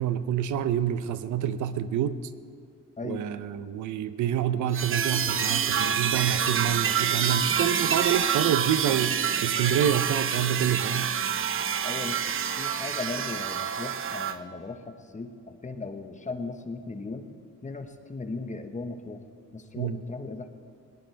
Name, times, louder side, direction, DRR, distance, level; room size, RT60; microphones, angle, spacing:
voice 1, 0.0-2.2 3.0-11.1 19.7-20.0, right 10 dB, 75° right, 12 dB, 0.7 m, -27 dB
voice 2, 3.0-3.3 11.8-17.3 17.6-19.2 19.5-20.5, left 3 dB, 25° left, 7 dB, 1.3 m, -37 dB
sound 1, 4.7-14.3, right 8 dB, 45° right, 0.8 m, -27 dB
21.5 x 18.0 x 3.4 m, 2.2 s
cardioid pair, 90°, 30 cm